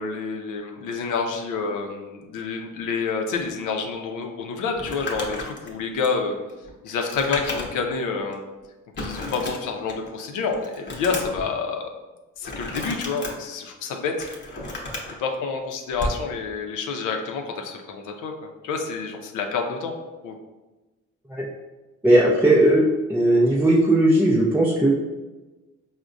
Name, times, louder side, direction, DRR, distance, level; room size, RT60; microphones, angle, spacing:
voice 1, 0.0-6.4 6.8-8.4 9.0-11.8 12.4-14.3 15.2-18.3 18.6-19.9 20.2-20.4, left 4 dB, 85° left, 3 dB, 0.5 m, -28 dB
Crumpling crinkling, 4.7-7.9 8.3-8.4 8.9-10.1 10.5-11.4 12.4-13.3 13.9-15.1 15.9-16.2, left 2 dB, 35° left, 0.8 m, -33 dB
voice 2, 22.0-24.9, right 1 dB, 5° right, -4 dB, 0.4 m, -18 dB
4.6 x 2.1 x 2.5 m, 1.1 s
cardioid pair, 90°, 30 cm